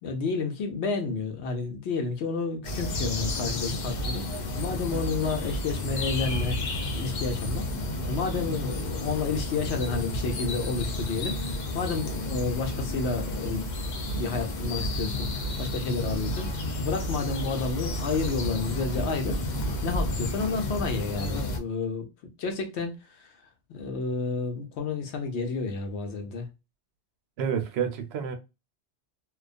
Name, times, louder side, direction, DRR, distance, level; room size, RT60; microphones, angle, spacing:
voice 1, 0.0-7.7 8.1-13.7 14.1-19.4 19.8-22.0 22.4-23.4 23.7-26.5, left 4 dB, 75° left, 0.9 m, -31 dB
sound 1, 2.6-21.6, left 1 dB, 55° left, 0.6 m, -31 dB
voice 2, 27.4-28.4, right 7 dB, 70° right, 0.8 m, -29 dB
2.3 x 2.2 x 2.4 m
omnidirectional pair, 1.2 m